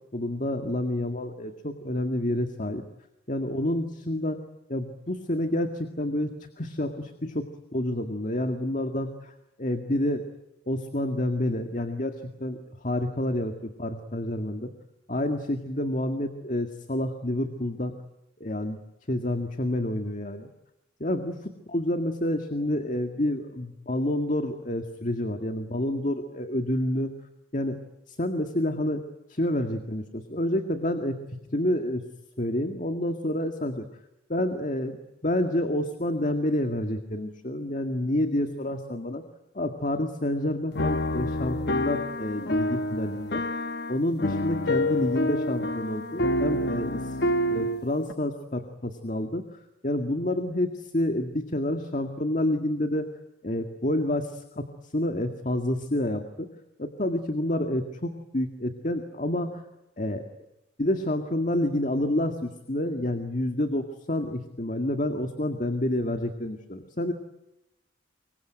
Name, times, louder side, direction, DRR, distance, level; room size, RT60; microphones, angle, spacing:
voice 1, 0.1-2.8 3.3-4.4 4.7-7.5 7.7-9.3 9.6-10.3 10.7-14.7 15.1-17.9 18.4-18.8 19.1-20.5 21.0-27.1 27.5-27.8 28.1-29.0 29.3-31.2 31.5-32.0 32.4-33.9 34.3-39.2 39.5-43.4 43.9-47.2 47.5-49.4 49.8-53.1 53.4-54.7 54.9-56.5 56.8-59.6 60.0-60.2 60.8-67.1, left 1 dB, 45° left, 6 dB, 2.0 m, -28 dB
sound 1, 40.8-48.1, left 1 dB, 60° left, 1.1 m, -28 dB
26.0 x 23.0 x 9.2 m, 0.89 s
head